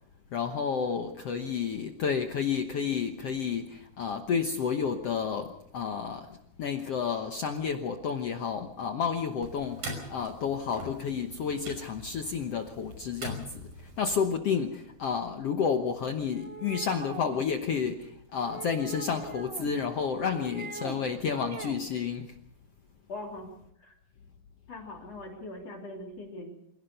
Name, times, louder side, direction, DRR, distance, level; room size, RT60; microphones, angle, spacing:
voice 1, 0.3-22.3, left 6 dB, 70° left, 6 dB, 1.5 m, -31 dB
sound 1, 9.4-14.2, right 1 dB, 70° right, 7.3 m, -43 dB
sound 2, 16.3-17.4 18.4-19.7 20.1-21.0 21.3-21.8, right 3 dB, 45° right, 0.7 m, -41 dB
voice 2, 23.1-23.5 23.8-23.9 24.7-26.5, left 2 dB, 45° left, 1 dB, 4.0 m, -41 dB
26.5 x 17.0 x 6.7 m, 0.76 s
omnidirectional pair, 4.3 m